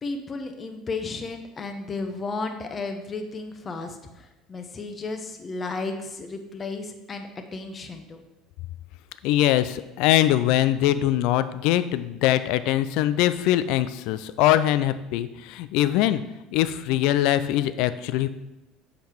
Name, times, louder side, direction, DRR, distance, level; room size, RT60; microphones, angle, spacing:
voice 1, 0.0-8.2, left 3 dB, 30° left, 5 dB, 1.0 m, -33 dB
voice 2, 9.2-16.2 16.5-18.3, left 13 dB, 65° left, 13 dB, 0.4 m, -22 dB
7.4 x 5.2 x 4.5 m, 0.96 s
hypercardioid pair, 65°, 0 cm